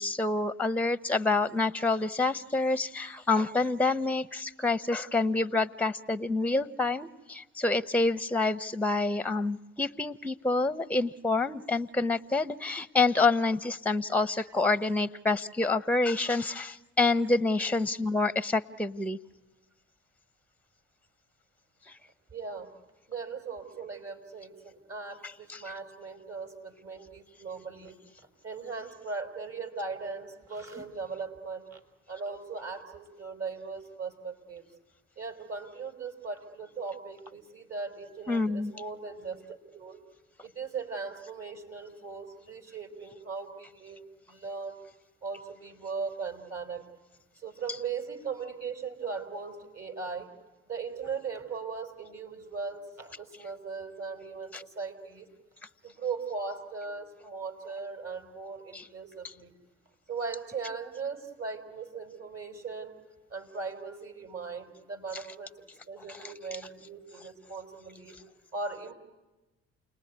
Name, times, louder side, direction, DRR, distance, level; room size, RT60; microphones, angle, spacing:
voice 1, 0.0-19.2 21.9-22.0 25.5-25.6 38.3-38.7 54.5-54.6 58.7-58.9 59.2-59.3 65.1-65.2 66.1-66.6, left 3 dB, 5° left, 17 dB, 0.8 m, -28 dB
voice 2, 22.3-22.7 23.1-28.0 28.4-31.8 32.1-34.6 35.2-39.4 39.7-40.0 40.4-44.8 45.2-46.8 47.4-50.3 50.7-55.3 55.8-59.5 60.1-62.9 63.3-68.2 68.5-68.9, right 4 dB, 50° right, 5 dB, 4.7 m, -38 dB
29.0 x 19.5 x 9.6 m, 1.1 s
hypercardioid pair, 50°, 33 cm